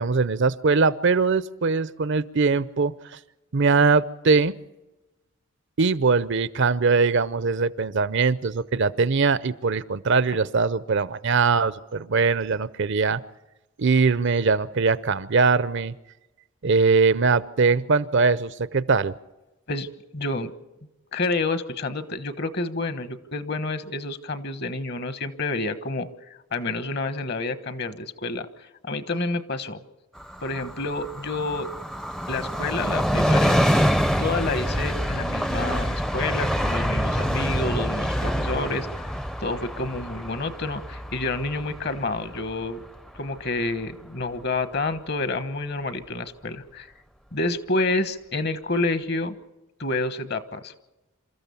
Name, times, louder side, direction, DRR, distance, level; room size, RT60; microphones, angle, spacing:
voice 1, 0.0-3.2 3.5-4.5 5.8-13.2 13.8-15.9 16.6-19.2, right 4 dB, 55° right, 17 dB, 0.6 m, -21 dB
voice 2, 20.1-20.5 21.1-29.8 30.4-31.7 32.3-33.7 34.2-39.1 39.4-42.8 43.1-46.9 47.3-49.4 49.8-50.7, left 2 dB, 50° left, 12 dB, 1.2 m, -29 dB
Train, 30.2-43.5 43.8-43.9, equal, ahead, 0.6 m, -26 dB
27.5 x 14.0 x 7.0 m, 1.0 s
head